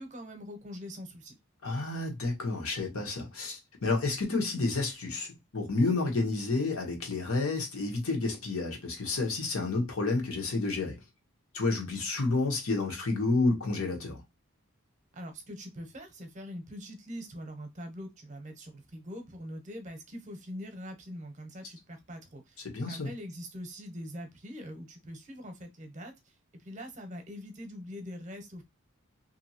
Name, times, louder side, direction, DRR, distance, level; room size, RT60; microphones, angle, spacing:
voice 1, 0.0-1.4 15.1-22.6 22.9-26.1 26.5-28.6, equal, 35° right, 0.7 m, -43 dB
voice 2, 1.6-11.0 11.5-14.2 22.6-23.1, left 3 dB, 85° left, 1.0 m, -30 dB
2.7 x 2.7 x 2.7 m
head